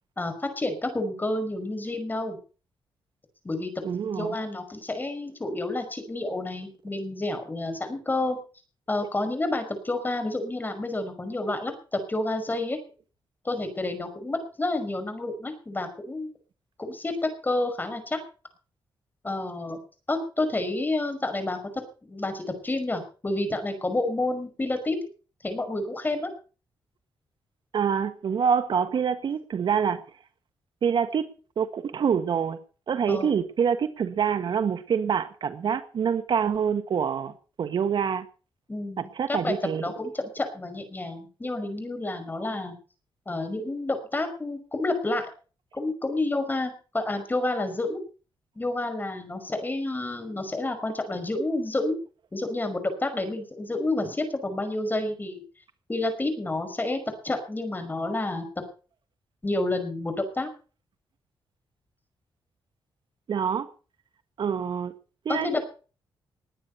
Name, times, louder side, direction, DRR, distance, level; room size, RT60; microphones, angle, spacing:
voice 1, 0.2-2.4 3.4-3.7 4.0-8.4 8.9-12.8 13.4-16.3 16.8-17.1 17.4-18.2 19.2-19.8 20.1-21.6 22.0-25.0 25.4-26.3 33.1-33.3 38.7-42.7 43.3-45.2 45.7-48.0 48.6-51.9 52.3-55.4 55.9-58.5 59.4-60.5 65.3-65.6, left 2 dB, 20° left, 5.5 m, -29 dB
voice 2, 3.8-4.3 27.7-30.0 30.8-31.3 31.6-32.6 32.9-38.3 39.0-39.9 63.3-63.7 64.4-64.9 65.2-65.6, right 7 dB, 60° right, 1.5 m, -26 dB
20.0 x 9.6 x 5.6 m
cardioid pair, 100°, 9 cm